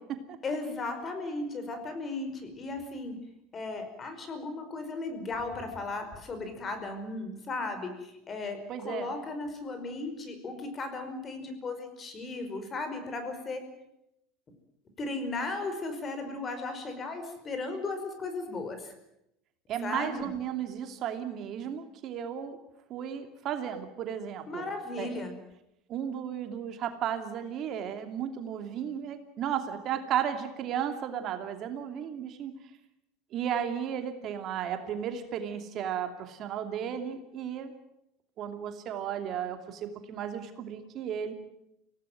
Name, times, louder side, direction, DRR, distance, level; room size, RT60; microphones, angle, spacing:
voice 1, 0.4-3.2 3.5-13.6 15.0-18.9 19.8-20.3 24.5-25.4, left 3 dB, 30° left, 8 dB, 5.3 m, -36 dB
voice 2, 8.7-9.1 19.7-22.6 22.9-24.6 25.0-25.1 25.9-32.5 33.3-37.7 38.4-41.3, right 9 dB, 50° right, 6 dB, 2.7 m, -34 dB
24.5 x 17.5 x 9.3 m, 0.83 s
supercardioid pair, 120°, 0 cm